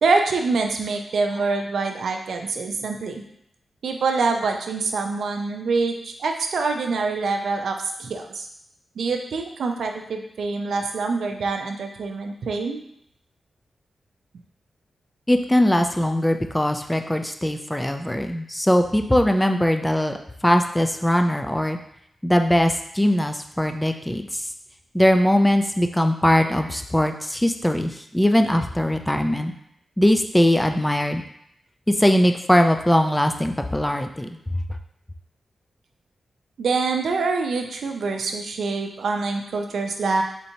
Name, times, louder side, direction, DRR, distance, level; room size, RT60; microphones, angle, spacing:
voice 1, 0.0-3.2 3.8-8.5 9.0-12.8 36.6-40.2, right 4 dB, 80° right, 3 dB, 0.4 m, -25 dB
voice 2, 15.3-20.2 20.4-21.8 22.2-24.4 24.9-29.5 30.0-31.2 31.9-34.6, left 1 dB, 10° left, 6 dB, 0.4 m, -20 dB
4.3 x 2.8 x 2.7 m, 0.74 s
cardioid pair, 65°, 0 cm